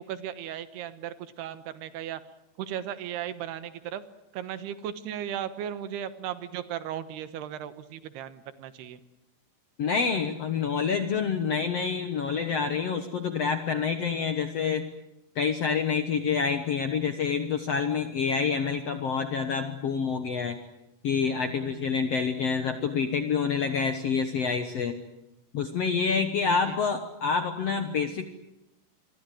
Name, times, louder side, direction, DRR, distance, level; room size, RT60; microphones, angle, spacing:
voice 1, 0.0-2.2 2.6-4.0 4.3-9.0 21.6-21.9 26.5-26.8, right 10 dB, 85° right, 12 dB, 3.3 m, -36 dB
voice 2, 9.8-14.9 15.3-20.6 21.0-24.9 25.5-28.3, left 6 dB, 65° left, 8 dB, 1.6 m, -27 dB
27.5 x 23.0 x 7.7 m, 0.90 s
omnidirectional pair, 4.6 m